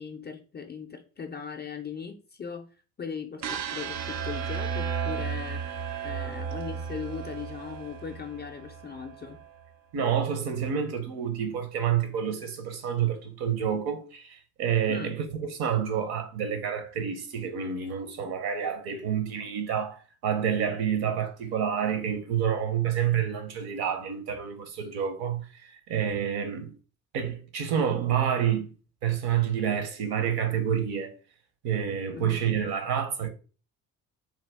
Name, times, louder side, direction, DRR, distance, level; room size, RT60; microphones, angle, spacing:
voice 1, 0.0-2.7 3.0-5.6 6.0-9.4 14.9-15.2 32.1-32.7, left 6 dB, 25° left, 0.5 m, -39 dB
sound 1, 3.4-9.5, right 6 dB, 40° right, 0.5 m, -34 dB
voice 2, 9.9-25.5 25.9-26.7 27.1-28.7 29.0-31.1 31.6-33.3, right 8 dB, 60° right, 0.8 m, -28 dB
2.9 x 2.3 x 3.4 m
hypercardioid pair, 50°, 44 cm